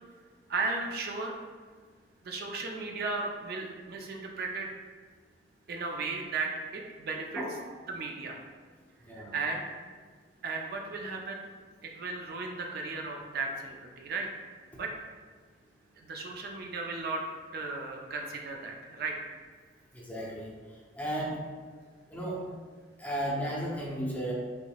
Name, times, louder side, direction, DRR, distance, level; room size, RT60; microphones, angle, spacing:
voice 1, 0.5-1.4 2.2-4.7 5.7-7.4 7.9-8.4 9.1-9.6 10.4-11.5 11.8-14.3 14.7-14.9 16.0-17.2 17.5-19.2, right 3 dB, 55° right, 2 dB, 0.4 m, -35 dB
voice 2, 9.0-9.3 19.9-20.5 20.9-21.4 22.1-22.4 23.0-24.3, right 1 dB, 10° left, -4 dB, 0.6 m, -34 dB
3.5 x 3.5 x 2.3 m, 1.6 s
head